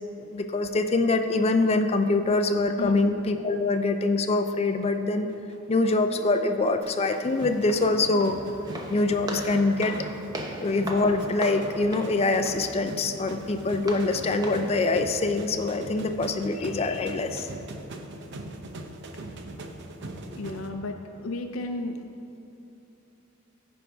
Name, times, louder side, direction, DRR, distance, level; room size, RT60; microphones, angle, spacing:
voice 1, 0.2-5.3 5.7-8.4 8.9-9.9 10.6-17.5, left 3 dB, 30° left, 7 dB, 0.4 m, -24 dB
sound 1, 5.3-20.7, right 1 dB, 60° right, 0.6 m, -41 dB
Walk footsteps, 6.8-14.8, right 1 dB, 20° right, 0.8 m, -39 dB
voice 2, 20.4-22.0, left 2 dB, 85° left, 5 dB, 0.6 m, -33 dB
14.0 x 5.2 x 3.5 m, 2.9 s
head